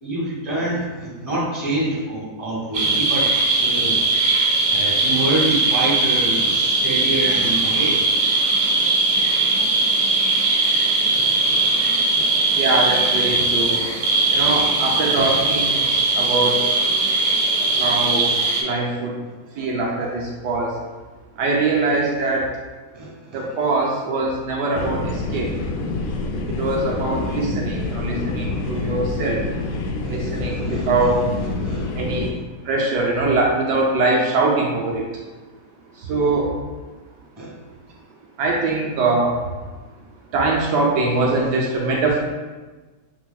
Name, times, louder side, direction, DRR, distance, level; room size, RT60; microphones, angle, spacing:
voice 1, 0.0-3.3 3.6-4.0 4.7-8.1 9.1-9.5 11.1-12.6 13.4-13.8 17.6-18.0 22.9-23.5 30.0-31.2 31.6-31.9 37.4-37.5, right 2 dB, 20° right, -5 dB, 1.2 m, -27 dB
sound 1, 2.7-18.6, right 3 dB, 50° right, 0.9 m, -19 dB
voice 2, 12.5-13.8 14.3-15.9 16.2-16.6 17.8-18.3 18.6-19.2 19.5-20.7 21.4-22.5 23.3-25.5 26.5-29.4 30.0-31.2 31.9-32.3 32.6-35.1 36.0-36.6 38.4-39.4 40.3-42.2, right 3 dB, 80° right, -2 dB, 1.2 m, -22 dB
sound 2, 24.7-32.3, left 3 dB, 85° left, 1.2 m, -27 dB
6.1 x 3.4 x 2.2 m, 1.3 s
omnidirectional pair, 1.8 m